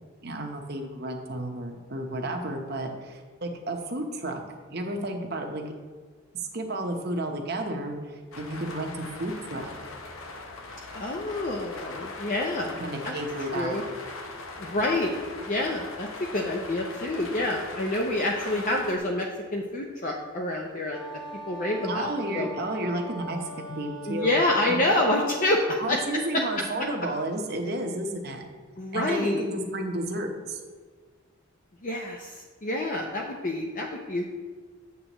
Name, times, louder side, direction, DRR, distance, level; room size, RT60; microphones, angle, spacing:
voice 1, 0.2-4.4 4.7-5.6 6.5-9.7 12.8-13.8 21.8-24.3 24.7-24.8 25.8-28.4 28.9-30.6, right 1 dB, 50° right, 2 dB, 0.9 m, -32 dB
sound 1, 8.3-19.0, left 3 dB, 90° left, 0.8 m, -40 dB
voice 2, 10.9-12.8 13.0-13.1 13.5-13.8 14.6-15.1 15.5-21.0 21.5-22.5 24.1-26.0 26.3-26.9 28.8-29.4 31.8-34.3, left 1 dB, 40° left, 0 dB, 0.6 m, -27 dB
Wind instrument woodwind instrument, 20.9-25.8, left 1 dB, 20° left, 1.3 m, -41 dB
8.3 x 7.6 x 3.0 m, 1.5 s
head